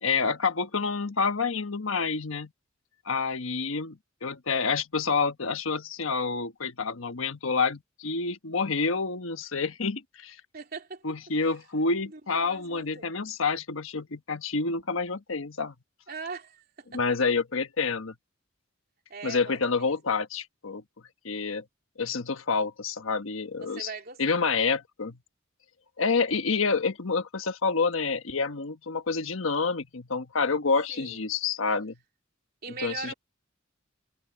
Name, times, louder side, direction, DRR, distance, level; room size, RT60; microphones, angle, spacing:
voice 1, 0.0-2.5 3.1-10.4 11.0-15.7 16.9-18.1 19.2-20.8 21.2-21.6 22.0-23.9 24.2-25.2 26.0-32.0 32.8-33.1, left 4 dB, 85° left, 1.2 m, -28 dB
voice 2, 10.5-11.0 12.1-13.1 16.1-17.0 19.1-19.9 23.6-24.4 30.9-31.3 32.6-33.1, right 4 dB, 50° right, 3.5 m, -41 dB
head